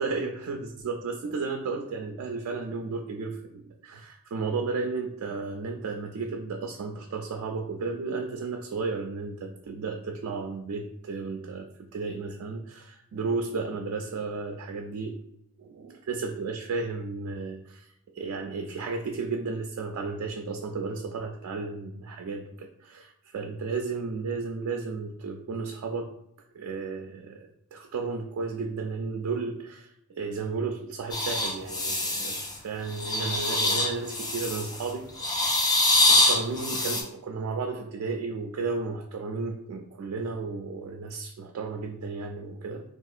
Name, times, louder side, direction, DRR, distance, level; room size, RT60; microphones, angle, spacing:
voice 1, 0.0-15.2 15.6-26.1 26.5-35.5 36.1-42.8, right 4 dB, 85° right, 3 dB, 0.3 m, -33 dB
sound 1, 31.1-32.6 32.9-34.8 35.2-37.0, left 2 dB, 20° left, 0.4 m, -24 dB
3.6 x 2.4 x 2.4 m, 0.79 s
head